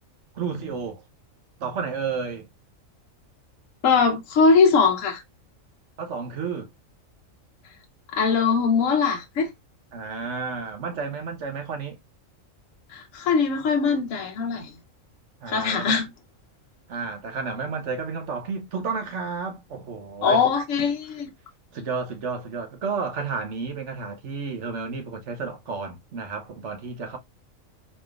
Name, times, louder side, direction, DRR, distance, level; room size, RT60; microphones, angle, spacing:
voice 1, 0.3-1.0 1.6-2.5 6.0-6.7 9.9-12.0 15.4-16.0 16.9-20.4 21.7-27.2, right 5 dB, 65° right, 1.2 m, -31 dB
voice 2, 3.8-5.2 8.1-9.5 12.9-14.7 15.5-16.1 20.2-21.3, left 5 dB, 75° left, 1.1 m, -21 dB
4.2 x 3.3 x 2.3 m
omnidirectional pair, 1.4 m